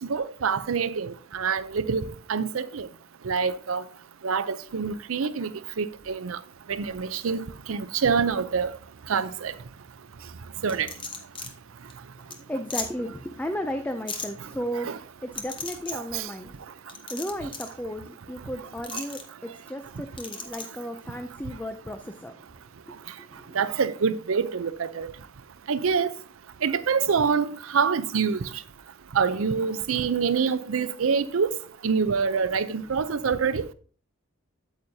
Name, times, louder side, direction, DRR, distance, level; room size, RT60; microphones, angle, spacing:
voice 1, 0.0-2.9 3.2-3.8 4.2-5.5 5.8-6.4 6.7-8.8 9.1-9.5 10.6-10.9 14.7-15.0 15.9-16.3 18.9-19.0 23.5-25.1 25.7-26.1 26.6-28.5 29.1-31.6 31.8-33.7, right 6 dB, 85° right, 0.5 m, -26 dB
sound 1, 10.7-11.5 11.9-12.0 12.3-12.4 12.7-12.9 14.1-14.3 15.3-15.9 16.9-17.7 18.8-19.2 20.2-20.7, left 4 dB, 25° left, 0.9 m, -35 dB
voice 2, 12.2-14.9 15.2-16.5 17.1-22.3, equal, 10° left, 0.4 m, -34 dB
8.7 x 8.0 x 2.7 m
head